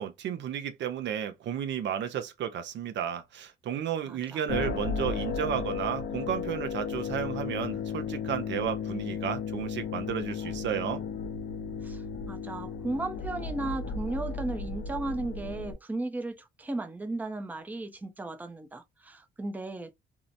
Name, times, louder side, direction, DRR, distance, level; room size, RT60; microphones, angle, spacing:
voice 1, 0.0-11.0, right 9 dB, 65° right, 0.5 m, -33 dB
voice 2, 4.1-4.4 11.8-19.9, right 2 dB, 10° right, 0.5 m, -35 dB
sound 1, 4.5-15.7, left 6 dB, 55° left, 0.6 m, -34 dB
2.7 x 2.0 x 2.5 m
cardioid pair, 90°, 20 cm